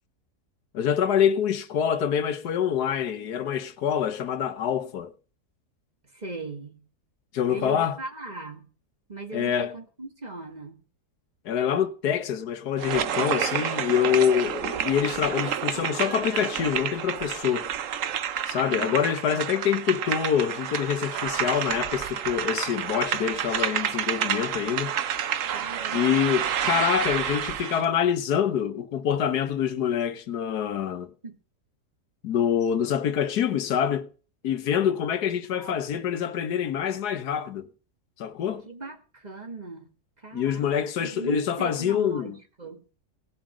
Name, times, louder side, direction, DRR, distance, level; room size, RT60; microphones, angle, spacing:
voice 1, 0.7-5.1 7.3-8.0 9.3-9.7 11.4-17.7 18.5-24.9 25.9-31.1 32.2-34.1 34.4-37.7 38.2-38.6 40.3-42.4, left 8 dB, 85° left, 1.5 m, -26 dB
voice 2, 6.1-6.8 7.5-8.7 9.1-10.8 15.7-16.5 18.7-19.0 19.3-19.4 25.5-26.4 31.2-31.4 35.5-35.7 38.7-39.9 40.2-40.7 41.0-42.3 42.6-42.8, right 2 dB, 25° right, 1.9 m, -38 dB
sound 1, 12.8-27.9, right 9 dB, 60° right, 1.1 m, -29 dB
18.0 x 7.5 x 6.1 m
omnidirectional pair, 1.7 m